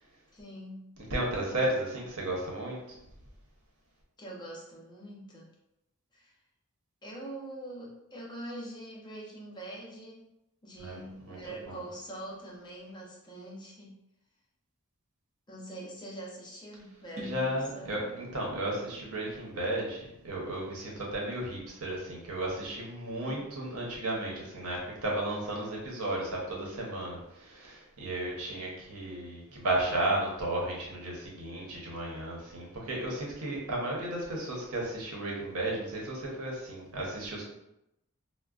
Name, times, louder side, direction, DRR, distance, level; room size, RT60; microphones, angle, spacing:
voice 1, 0.3-0.9 4.2-5.5 6.1-6.3 7.0-10.3 10.6-14.0 15.5-17.9 23.2-23.4, right 1 dB, 20° left, -4 dB, 0.6 m, -44 dB
voice 2, 1.1-3.0 10.8-11.4 11.7-11.8 17.2-37.4, right 1 dB, 85° right, -2 dB, 0.9 m, -34 dB
sound 1, 17.2-21.0, equal, 35° right, 0.5 m, -48 dB
3.5 x 2.2 x 2.4 m, 0.86 s
head